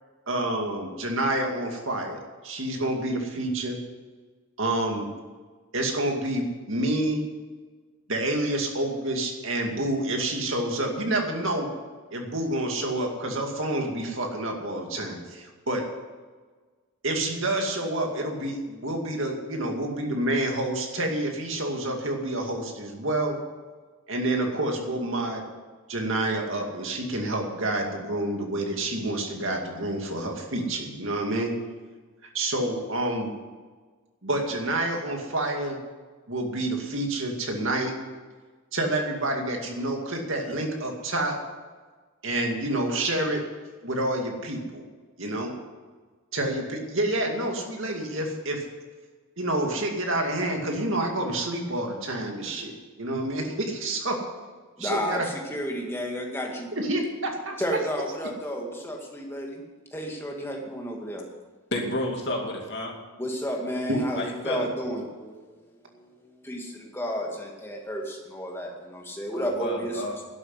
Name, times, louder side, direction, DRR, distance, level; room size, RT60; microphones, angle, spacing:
voice 1, 0.3-3.8 4.6-5.1 5.7-7.2 8.1-11.7 12.1-15.9 17.0-23.4 24.1-25.4 25.9-31.5 32.3-33.3 34.2-35.8 36.3-37.9 38.7-41.4 42.2-43.4 43.8-44.8 45.2-45.5 46.3-48.6 49.4-54.2 54.8-55.2 56.7-57.6 63.9-64.0, right 1 dB, 60° right, 2 dB, 2.3 m, -28 dB
voice 2, 54.8-56.7 57.6-59.6 59.9-61.2 63.2-65.4 65.9-70.0, equal, 10° left, 0 dB, 2.0 m, -32 dB
voice 3, 61.7-62.9 64.1-64.7 69.3-70.2, left 1 dB, 50° left, 0 dB, 2.6 m, -30 dB
12.0 x 8.2 x 9.6 m, 1.4 s
head